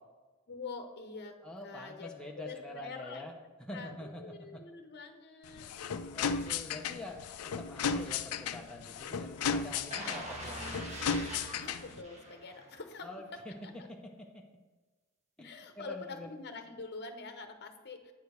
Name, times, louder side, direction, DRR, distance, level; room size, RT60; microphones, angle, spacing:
voice 1, 0.5-3.2 3.7-5.7 11.6-13.1 13.6-13.9 15.4-18.1, left 4 dB, 50° left, 6 dB, 0.9 m, -45 dB
voice 2, 1.4-3.3 3.7-4.6 6.1-7.2 7.4-11.0 13.0-13.5 13.9-14.4 15.4-16.3, left 1 dB, 5° left, -1 dB, 0.7 m, -46 dB
sound 1, 5.4-12.0, left 6 dB, 90° left, 0.4 m, -35 dB
sound 2, 9.9-12.9 13.3-13.4, right 1 dB, 30° right, 1.4 m, -43 dB
9.2 x 5.0 x 5.0 m, 1.3 s
head